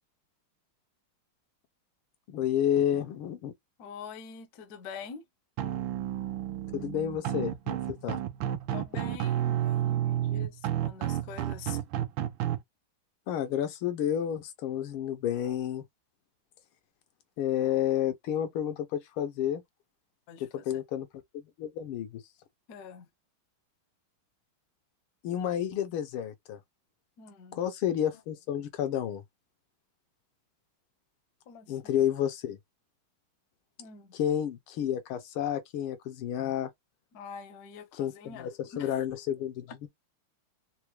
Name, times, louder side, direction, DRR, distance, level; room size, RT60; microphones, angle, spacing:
voice 1, 2.3-3.5 6.7-8.2 13.3-15.8 17.4-19.6 20.4-21.1 21.6-22.2 25.2-26.6 27.5-29.2 31.7-32.6 34.1-36.7 38.0-39.9, left 10 dB, 80° left, 1.6 m, -30 dB
voice 2, 3.8-5.2 8.7-11.8 20.3-20.8 22.7-23.1 27.2-27.6 31.5-32.0 33.8-34.2 37.1-39.0 39.7-39.8, left 6 dB, 60° left, 1.1 m, -45 dB
sound 1, 5.6-12.6, right 12 dB, 75° right, 1.3 m, -31 dB
4.5 x 2.1 x 3.0 m
omnidirectional pair, 2.4 m